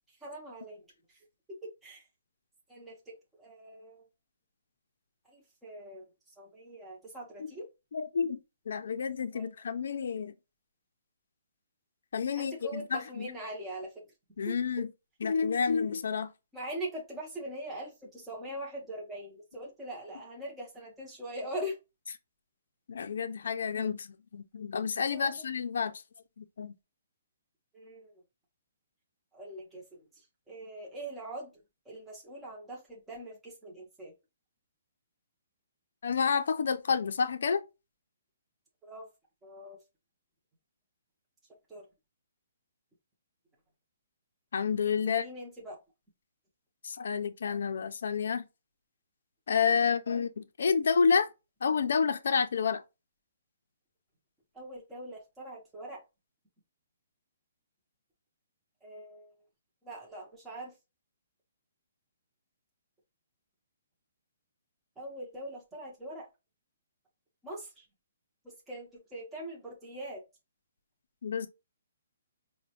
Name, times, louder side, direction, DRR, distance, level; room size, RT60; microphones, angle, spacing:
voice 1, 0.2-0.8 1.8-2.0 2.7-3.1 3.4-4.1 5.3-6.1 6.4-7.6 9.3-9.5 12.3-14.0 14.4-14.6 16.5-21.8 25.1-25.3 27.7-28.1 29.3-29.8 30.2-31.5 31.9-34.1 38.8-39.1 39.4-39.8 41.7-41.9 45.1-45.8 50.1-50.3 54.5-56.0 58.8-59.3 59.8-60.7 65.0-66.3 67.4-67.8 68.7-70.2, right 1 dB, 5° right, 0.6 m, -42 dB
voice 2, 7.9-8.4 8.7-10.3 12.1-13.3 14.4-14.9 15.2-16.3 22.9-25.9 26.4-26.7 36.0-37.6 44.5-45.2 46.8-48.4 49.5-51.3 51.6-52.8 71.2-71.5, left 6 dB, 60° left, 0.4 m, -29 dB
4.9 x 2.1 x 2.8 m
hypercardioid pair, 175°, 0 cm